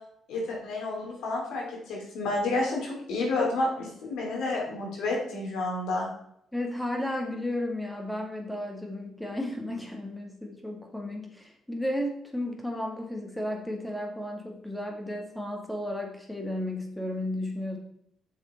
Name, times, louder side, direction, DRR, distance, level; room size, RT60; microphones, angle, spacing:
voice 1, 0.3-6.1, left 2 dB, 85° left, -1 dB, 3.0 m, -30 dB
voice 2, 6.5-17.8, left 1 dB, 5° left, 2 dB, 1.9 m, -33 dB
7.0 x 6.4 x 4.4 m, 0.72 s
cardioid pair, 90°, 0 cm